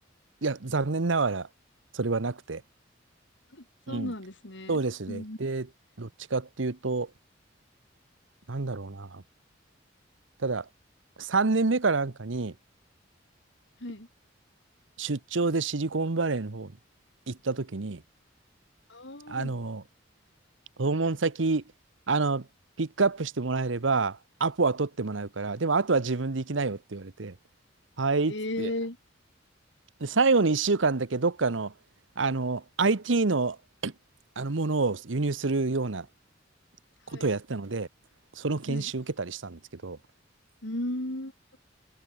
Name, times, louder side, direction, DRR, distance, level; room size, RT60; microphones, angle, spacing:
voice 1, 0.4-1.5 1.9-2.6 3.9-4.1 4.7-5.7 6.0-7.1 8.5-9.2 10.4-10.6 11.2-12.5 15.0-16.7 17.3-18.0 19.3-19.8 20.8-21.6 22.1-22.5 22.8-27.3 28.0-28.7 30.0-31.7 32.2-33.6 33.8-33.9 34.4-36.1 37.1-37.9 38.4-40.0, right 3 dB, 80° right, 1.0 m, -27 dB
voice 2, 3.5-4.8 5.1-5.4 13.8-14.1 18.9-19.5 28.3-29.0 37.1-37.3 38.7-38.9 40.6-41.6, left 1 dB, 65° left, 4.3 m, -35 dB
head